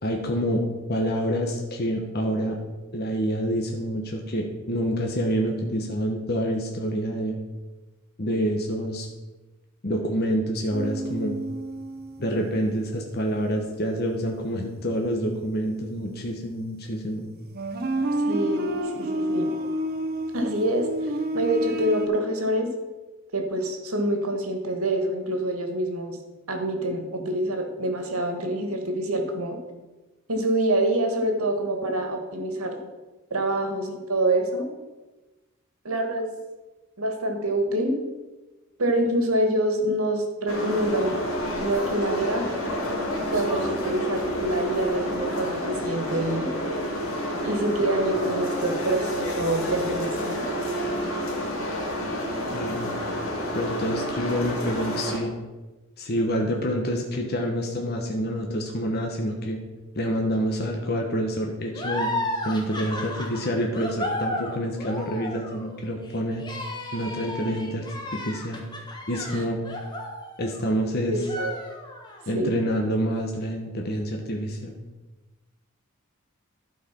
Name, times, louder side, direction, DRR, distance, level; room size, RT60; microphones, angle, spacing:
voice 1, 0.0-0.6 0.9-2.6 2.9-7.4 8.2-9.1 9.8-11.4 12.2-17.3 52.5-53.0 53.5-55.3 56.0-59.6 59.9-62.1 62.4-66.4 66.9-67.8 68.1-68.7 69.1-69.6 70.4-71.2 72.3-74.7, equal, 45° left, 2 dB, 1.0 m, -27 dB
sound 1, 10.7-13.2 13.6-13.9 16.5-16.6 17.2-22.1, right 1 dB, 45° right, 0.9 m, -29 dB
voice 2, 18.3-19.5 20.3-22.7 23.3-26.2 26.5-29.6 30.3-32.9 33.3-34.7 35.8-36.3 37.0-38.0 38.8-41.2 41.6-42.5 43.3-46.5 47.4-50.4 71.1-71.5 72.3-72.5, right 1 dB, 90° right, 4 dB, 1.6 m, -26 dB
sound 2, 40.5-55.2, equal, 75° left, 1.9 m, -29 dB
sound 3, 61.7-70.8 71.2-72.2, left 1 dB, 20° left, 1.3 m, -34 dB
11.5 x 4.8 x 5.9 m, 1.2 s
head